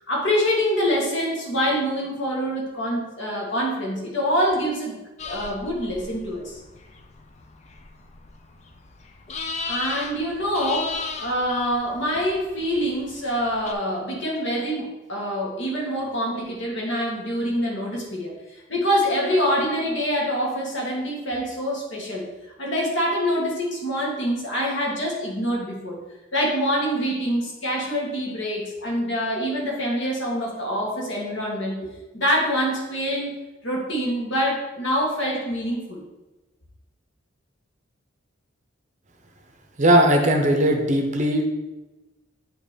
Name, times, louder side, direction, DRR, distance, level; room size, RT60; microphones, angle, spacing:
voice 1, 0.1-6.6 9.7-22.3 22.6-26.0 26.3-33.4 33.6-36.0, equal, 60° left, -2 dB, 1.8 m, -25 dB
sound 1, 5.2-13.7, left 4 dB, 30° left, 0.5 m, -36 dB
voice 2, 39.8-41.4, right 1 dB, 35° right, 4 dB, 0.7 m, -18 dB
8.7 x 3.0 x 5.1 m, 1.1 s
head